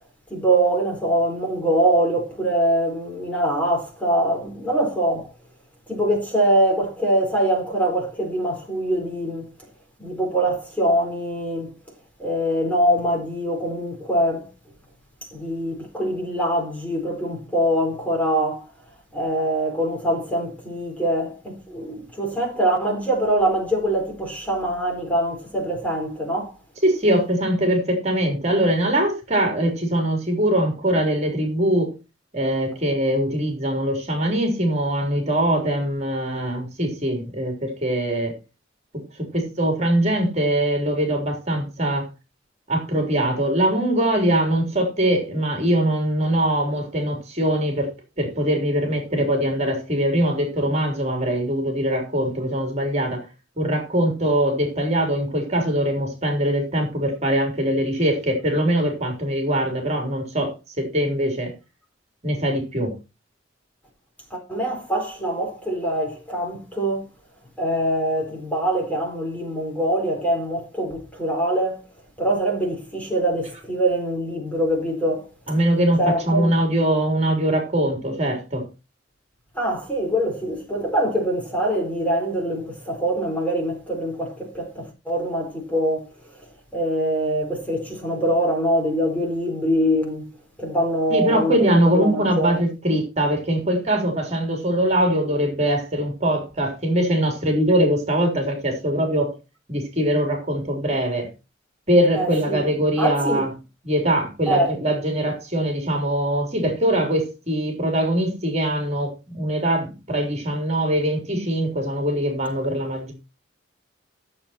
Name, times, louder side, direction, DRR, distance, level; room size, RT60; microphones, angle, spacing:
voice 1, 0.3-5.3 5.9-9.5 10.0-11.7 12.2-14.5 15.3-18.7 19.1-26.5 64.3-67.0 67.6-71.8 72.2-75.2 76.0-76.5 79.5-86.1 86.7-90.2 90.6-92.6 102.1-102.6 103.0-103.4 104.5-104.7, right 1 dB, 10° left, 4.3 m, -23 dB
voice 2, 26.8-31.9 32.3-38.3 39.3-42.1 42.7-47.9 48.2-53.2 53.6-61.5 62.2-62.9 75.5-76.0 76.3-78.6 91.1-99.3 99.7-101.3 101.9-103.5 103.8-113.1, right 1 dB, 35° right, 3.5 m, -22 dB
14.0 x 7.6 x 4.4 m
head